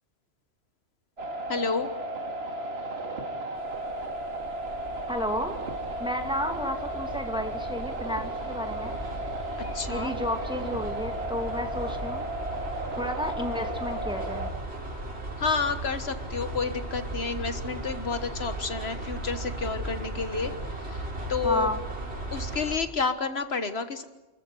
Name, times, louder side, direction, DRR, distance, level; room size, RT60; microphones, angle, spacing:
sound 1, 1.2-14.5, right 2 dB, 75° right, 2.4 m, -34 dB
voice 1, 1.5-1.9 9.7-10.1 15.4-21.0 21.3-21.7 22.3-24.0, left 5 dB, 75° left, 9 dB, 1.7 m, -30 dB
sound 2, 3.6-22.8, right 1 dB, 90° right, 4.2 m, -37 dB
voice 2, 5.1-5.6 6.0-9.0 9.9-12.3 12.9-14.5 21.4-21.8, left 1 dB, 5° right, 4 dB, 2.4 m, -32 dB
sound 3, 6.2-12.9, equal, 30° left, 6.7 m, -50 dB
29.0 x 14.0 x 9.4 m, 1.1 s
omnidirectional pair, 1.1 m